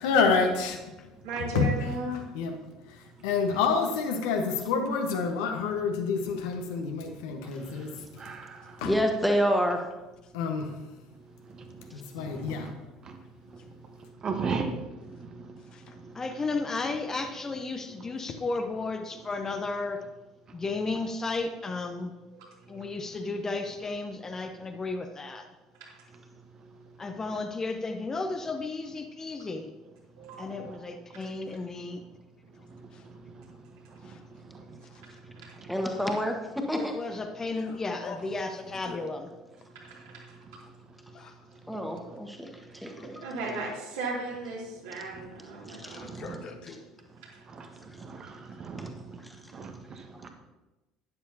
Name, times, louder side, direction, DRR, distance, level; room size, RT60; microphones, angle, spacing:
voice 1, 0.0-0.8 1.5-1.7 2.1-2.5 3.2-7.9 8.8-8.9 10.3-10.7 11.9-12.7, left 5 dB, 65° left, 4 dB, 1.4 m, -27 dB
voice 2, 1.2-2.2 22.3-22.8 25.9-26.0 30.2-30.7 39.8-40.4 42.9-46.1, right 3 dB, 65° right, -3 dB, 3.0 m, -36 dB
voice 3, 8.2-8.6 12.3-12.5 14.2-14.8 30.6-30.7 46.1-46.4 48.2-48.3 48.6-48.9 49.5-49.7 50.2-50.3, right 5 dB, 35° right, 5 dB, 1.3 m, -33 dB
voice 4, 8.8-9.8 35.7-37.0 41.7-43.3 45.7-46.0 49.2-49.4, equal, ahead, 2 dB, 1.7 m, -28 dB
voice 5, 16.1-20.0 20.5-22.1 22.7-25.5 27.0-29.7 30.4-32.0 36.7-39.3 41.1-41.3, left 3 dB, 25° left, 6 dB, 0.8 m, -33 dB
voice 6, 32.6-33.0 34.0-34.3 34.8-35.0 37.5-39.1 41.1-41.3 42.9-43.1 45.8-46.8, left 5 dB, 45° left, 6 dB, 1.2 m, -46 dB
12.5 x 10.5 x 2.9 m, 1.1 s
figure-of-eight pair, 60°, 2 cm